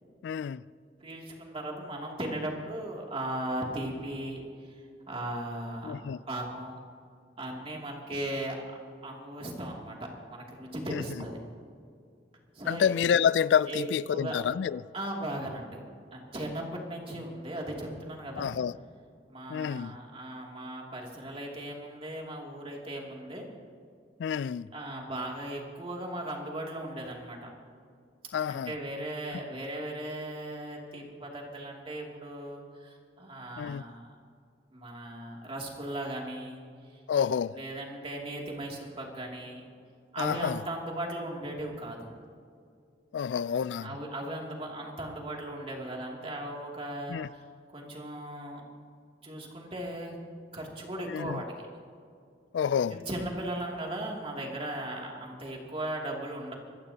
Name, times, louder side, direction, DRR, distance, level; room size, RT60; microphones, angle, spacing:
voice 1, 0.2-0.6 5.8-6.2 10.9-11.2 12.7-14.8 18.4-18.7 19.5-19.9 24.2-24.7 28.3-28.7 33.6-33.8 37.1-37.5 40.2-40.6 43.1-43.9 47.1-47.3 51.1-51.4 52.5-53.0, left 7 dB, 80° left, 0.3 m, -28 dB
voice 2, 1.0-4.4 5.1-6.0 6.3-6.8 7.4-8.5 9.0-11.4 12.5-12.9 13.7-13.8 14.1-14.4 14.9-15.8 16.1-18.5 19.3-23.4 24.7-27.5 28.5-34.1 34.7-36.6 37.5-39.6 40.1-42.1 43.8-47.4 47.7-48.6 49.2-50.2 50.5-51.7 52.9-56.5, right 1 dB, 30° right, 2.6 m, -37 dB
24.5 x 14.5 x 2.9 m
head